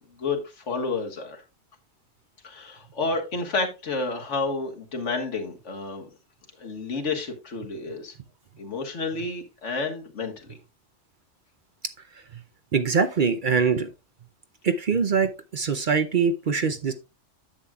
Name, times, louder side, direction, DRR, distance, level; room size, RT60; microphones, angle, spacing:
voice 1, 0.2-1.4 2.4-6.1 6.6-8.1 8.6-10.6, left 3 dB, 75° left, 1.8 m, -30 dB
voice 2, 12.7-13.9 14.6-16.9, right 5 dB, 50° right, 0.7 m, -23 dB
10.5 x 7.3 x 2.3 m
omnidirectional pair, 1.2 m